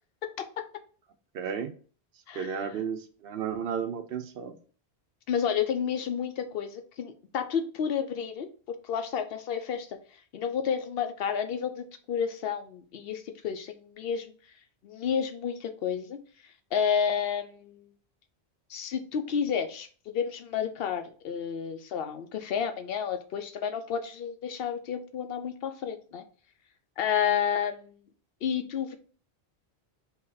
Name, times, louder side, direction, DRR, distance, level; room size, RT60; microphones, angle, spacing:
voice 1, 1.3-1.7 2.3-4.5, right 7 dB, 65° right, 8 dB, 0.7 m, -33 dB
voice 2, 5.3-8.5 8.8-10.0 10.3-14.3 14.8-16.2 16.7-17.9 18.7-26.2 27.0-27.9 28.4-28.9, left 7 dB, 65° left, 8 dB, 0.8 m, -30 dB
3.9 x 2.9 x 3.8 m, 0.40 s
omnidirectional pair, 1.1 m